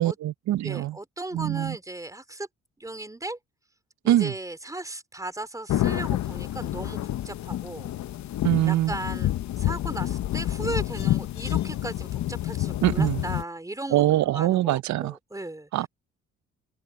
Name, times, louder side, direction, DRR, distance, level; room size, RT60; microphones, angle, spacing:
voice 1, 0.0-1.0 1.3-1.8 4.0-4.3 8.4-8.9 12.8-13.2 13.9-15.2 15.7-15.9, right 14 dB, 65° right, 0.6 m, -23 dB
voice 2, 0.6-2.5 2.8-3.4 4.0-7.9 8.7-15.9, right 2 dB, 10° right, 3.6 m, -36 dB
sound 1, 5.7-13.4, left 13 dB, 65° left, 0.9 m, -28 dB
cardioid pair, 90°, 30 cm